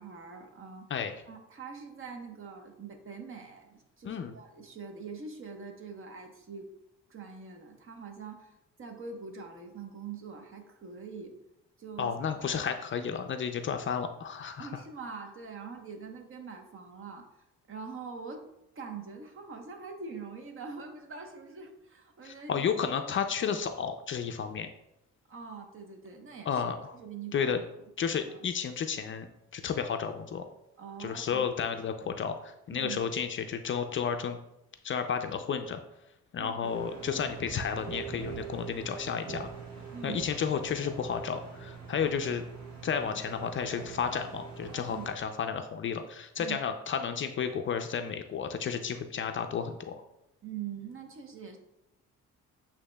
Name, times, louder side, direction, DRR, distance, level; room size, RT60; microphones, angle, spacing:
voice 1, 0.0-0.9 1.3-6.7 7.1-11.4 11.8-12.2 12.5-12.6 14.6-17.3 17.7-18.4 18.7-22.7 25.3-26.6 26.9-27.7 28.3-28.5 30.8-31.5 32.7-33.0 36.4-36.7 39.9-40.3 44.9-45.1 46.4-46.6 50.4-51.6, right 5 dB, 45° right, 4 dB, 0.9 m, -43 dB
voice 2, 4.0-4.4 12.0-14.8 22.2-24.7 26.5-27.0 27.3-27.6 28.0-30.4 31.0-34.4 34.8-35.8 36.3-39.5 40.0-42.4 42.8-49.9, left 7 dB, 40° left, 7 dB, 0.4 m, -32 dB
sound 1, 36.6-45.1, right 5 dB, 70° right, 1.4 m, -43 dB
8.3 x 2.9 x 2.2 m, 0.86 s
cardioid pair, 90°, 30 cm